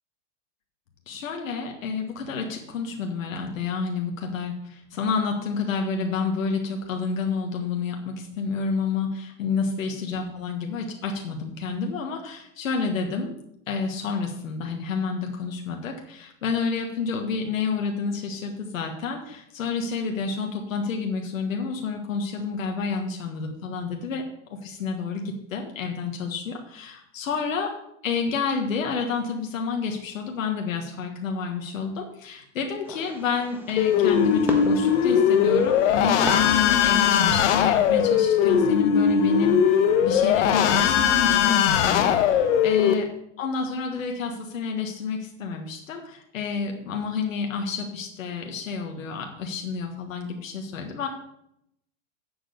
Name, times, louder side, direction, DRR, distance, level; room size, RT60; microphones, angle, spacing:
voice 1, 1.1-13.4 13.7-27.7 28.0-43.1 43.4-51.1, left 5 dB, 90° left, 3 dB, 1.6 m, -29 dB
Fireworks, 32.8-38.1, right 1 dB, 5° right, 1.3 m, -38 dB
sound 1, 33.8-42.9, left 8 dB, 65° left, 1.2 m, -20 dB
7.9 x 6.1 x 7.9 m, 0.77 s
hypercardioid pair, 125°, 39 cm